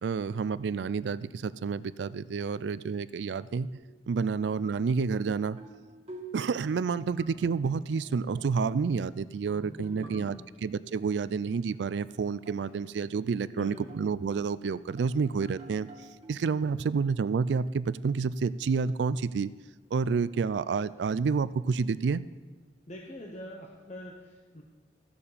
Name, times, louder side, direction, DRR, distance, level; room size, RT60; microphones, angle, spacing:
voice 1, 0.0-3.7 4.1-5.6 6.3-19.5 19.9-22.3, right 5 dB, 80° right, 17 dB, 0.4 m, -29 dB
sound 1, 3.7-8.5 9.5-10.7 11.7-14.4 14.9-16.8, right 2 dB, 40° right, 2.1 m, -49 dB
voice 2, 9.8-10.5 13.5-13.9 22.9-24.6, left 1 dB, 40° left, -1 dB, 1.0 m, -44 dB
15.0 x 7.1 x 5.0 m, 1.4 s
head